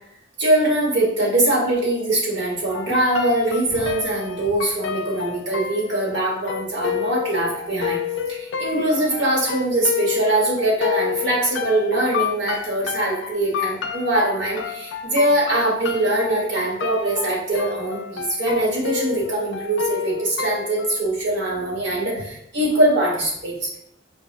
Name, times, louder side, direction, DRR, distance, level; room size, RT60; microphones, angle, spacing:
voice 1, 0.4-8.0 8.3-23.8, right 1 dB, 80° right, -4 dB, 1.2 m, -22 dB
sound 1, 2.7-21.0, left 8 dB, 80° left, 0.3 m, -30 dB
4.7 x 2.0 x 2.4 m, 0.71 s
head